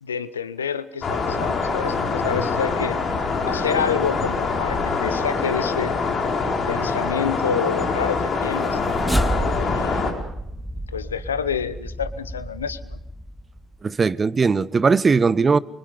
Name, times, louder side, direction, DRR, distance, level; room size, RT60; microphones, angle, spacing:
voice 1, 0.0-3.0 3.4-6.0 6.7-8.8 9.5-10.2 10.9-13.0, left 7 dB, 85° left, 0.9 m, -28 dB
sound 1, 1.0-10.1, left 4 dB, 50° left, 4.6 m, -24 dB
sound 2, 8.4-13.8, right 1 dB, ahead, 2.0 m, -30 dB
voice 2, 13.8-15.6, right 4 dB, 35° right, 1.0 m, -19 dB
28.5 x 25.0 x 5.3 m
figure-of-eight pair, 50°, 0 cm